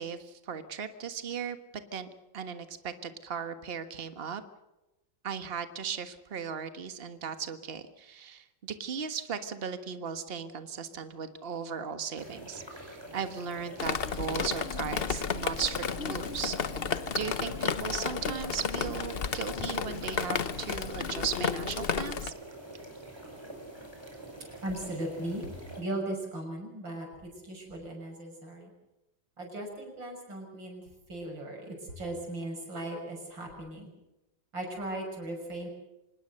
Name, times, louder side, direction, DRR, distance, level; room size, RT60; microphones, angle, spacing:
voice 1, 0.0-1.6 1.9-2.1 2.3-4.4 5.2-16.5 17.1-22.3, right 7 dB, 35° right, 10 dB, 1.5 m, -37 dB
sound 1, 12.2-25.8, right 1 dB, 15° right, 5.3 m, -46 dB
Drip, 13.8-22.3, left 6 dB, 45° left, 0.8 m, -32 dB
voice 2, 24.6-28.7 29.4-30.8 31.1-33.9 34.5-35.7, right 1 dB, 80° right, 2 dB, 6.9 m, -38 dB
25.5 x 20.0 x 6.5 m, 0.99 s
omnidirectional pair, 2.0 m